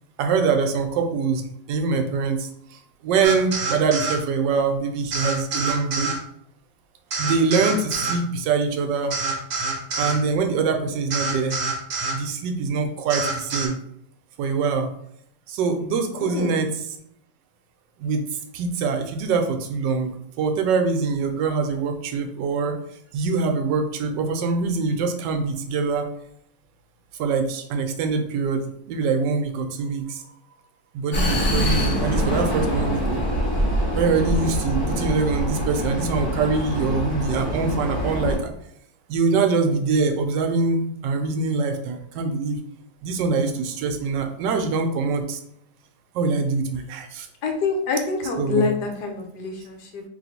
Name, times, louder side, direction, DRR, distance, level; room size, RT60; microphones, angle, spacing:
voice 1, 0.2-6.1 7.2-9.2 10.0-11.6 12.1-13.8 14.4-14.9 15.5-16.9 18.0-18.2 18.5-22.8 23.1-26.1 27.2-30.3 30.9-33.2 34.0-38.5 39.1-42.6 43.0-45.4 46.1-47.3 48.4-48.7, right 4 dB, 80° right, 5 dB, 1.2 m, -24 dB
sound 1, 3.2-4.2 5.1-6.2 7.1-8.2 9.1-10.2 11.1-12.2 13.1-13.7, right 3 dB, 55° right, 0.9 m, -26 dB
voice 2, 16.1-16.6 47.4-50.0, left 4 dB, 70° left, 3 dB, 1.2 m, -26 dB
Vehicle, 31.1-38.4, equal, 40° left, 1.3 m, -24 dB
3.1 x 2.9 x 4.1 m, 0.73 s
omnidirectional pair, 2.0 m